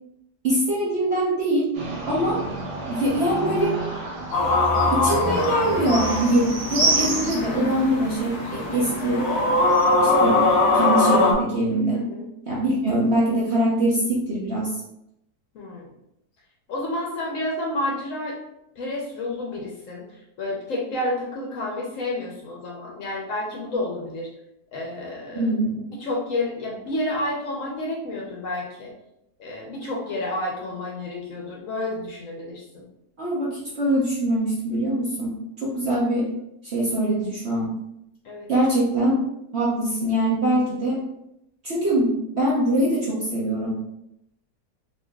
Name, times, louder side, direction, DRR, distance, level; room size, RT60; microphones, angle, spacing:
voice 1, 0.4-1.7 2.1-2.4 2.9-3.7 4.9-9.2 10.0-10.4 10.7-12.0 12.5-14.7 25.3-25.9 33.2-36.3 36.6-37.7 38.5-39.2 39.5-41.0 41.6-43.7, right 1 dB, 55° right, -6 dB, 0.7 m, -23 dB
sound 1, 1.7-9.9, right 2 dB, 85° right, 1.4 m, -30 dB
sound 2, 4.3-11.3, left 2 dB, 85° left, 1.2 m, -22 dB
voice 2, 11.9-12.2 15.5-15.9 16.7-18.4 18.8-20.1 20.4-24.3 24.7-25.5 26.0-28.9 29.4-32.8 38.2-38.5, left 1 dB, 65° left, -3 dB, 0.9 m, -30 dB
3.9 x 2.6 x 2.2 m, 0.82 s
omnidirectional pair, 1.8 m